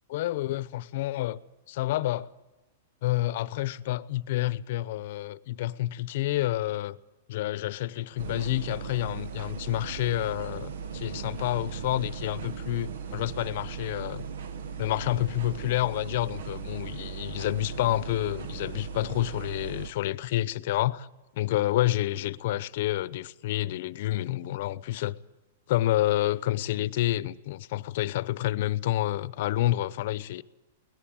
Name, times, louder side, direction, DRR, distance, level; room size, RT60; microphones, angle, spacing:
voice 1, 0.1-1.4 1.7-2.3 3.0-7.0 7.3-14.2 14.8-21.1 21.4-25.1 25.7-30.4, left 15 dB, 60° left, 0.8 m, -29 dB
sound 1, 8.2-19.9, right 6 dB, 75° right, 1.5 m, -38 dB
23.0 x 18.0 x 8.8 m
hypercardioid pair, 140°, 0 cm